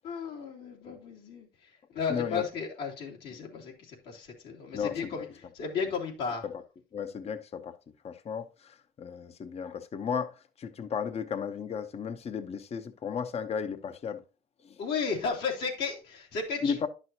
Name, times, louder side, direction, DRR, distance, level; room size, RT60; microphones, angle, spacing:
voice 1, 0.0-5.3 5.5-6.4 14.8-16.8, left 5 dB, 80° left, 2.8 m, -34 dB
voice 2, 2.1-2.4 4.7-5.2 6.9-7.7 8.0-14.2 14.6-14.8 16.6-16.9, left 6 dB, 40° left, 0.7 m, -34 dB
10.5 x 6.2 x 2.8 m
cardioid pair, 110°, 17 cm